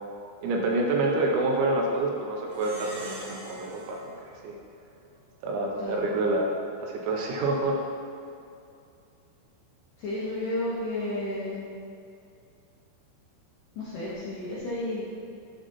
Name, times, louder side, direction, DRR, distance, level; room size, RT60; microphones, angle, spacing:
voice 1, 0.4-4.5 5.4-7.8, right 2 dB, 80° right, 0 dB, 2.8 m, -27 dB
Plucked string instrument, 2.5-5.3, right 1 dB, 60° right, 3.1 m, -45 dB
voice 2, 10.0-11.6 13.8-15.0, left 1 dB, 70° left, -8 dB, 2.1 m, -32 dB
11.0 x 3.8 x 4.0 m, 2.5 s
omnidirectional pair, 5.4 m